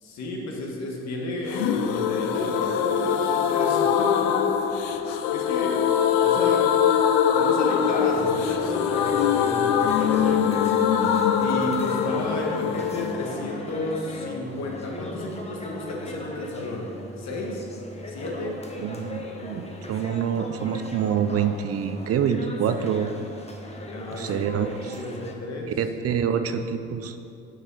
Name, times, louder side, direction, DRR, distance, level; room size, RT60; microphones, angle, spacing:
voice 1, 0.0-4.4 5.3-5.9 6.2-6.7 7.3-10.8 11.4-17.6 18.1-18.6 23.9-25.7, left 1 dB, 60° left, 0 dB, 1.6 m, -32 dB
sound 1, 1.5-15.1 15.4-15.5 15.7-15.8, left 8 dB, 75° left, 0.6 m, -23 dB
sound 2, 8.1-25.3, left 1 dB, 20° left, 1.2 m, -39 dB
voice 2, 18.8-23.1 24.1-24.7 25.8-27.2, right 8 dB, 50° right, 9 dB, 0.6 m, -26 dB
6.7 x 5.0 x 6.1 m, 2.5 s
hypercardioid pair, 55°, 31 cm